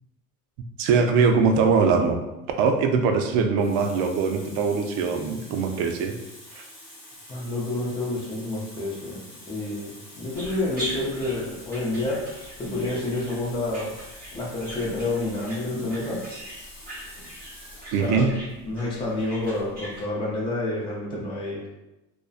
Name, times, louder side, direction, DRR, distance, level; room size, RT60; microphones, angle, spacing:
voice 1, 0.8-2.2 2.6-6.1 6.5-6.6 17.9-18.3, right 5 dB, 75° right, 4 dB, 0.5 m, -22 dB
Water tap faucet, 2.8-3.0 3.6-18.1 19.0-19.2, left 1 dB, 35° left, 1.0 m, -47 dB
voice 2, 7.3-9.2 9.5-13.9 14.3-16.2 18.0-18.3 18.6-21.7, left 2 dB, 15° left, -5 dB, 0.4 m, -29 dB
sound 1, 10.3-20.1, equal, 25° right, 1.0 m, -41 dB
2.5 x 2.1 x 2.3 m, 0.98 s
cardioid pair, 155°, 35 cm